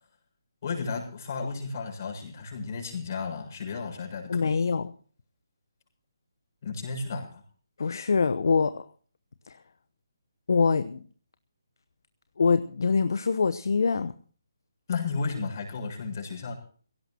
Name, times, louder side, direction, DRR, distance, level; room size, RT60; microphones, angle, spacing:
voice 1, 0.6-4.5 6.6-7.4 14.9-16.5, left 4 dB, 45° left, 1 dB, 7.0 m, -33 dB
voice 2, 4.3-4.9 7.8-8.9 9.5-9.6 10.5-11.0 12.4-14.1, left 5 dB, 65° left, 12 dB, 1.0 m, -24 dB
22.0 x 17.0 x 2.9 m, 0.43 s
figure-of-eight pair, 150°, 2 cm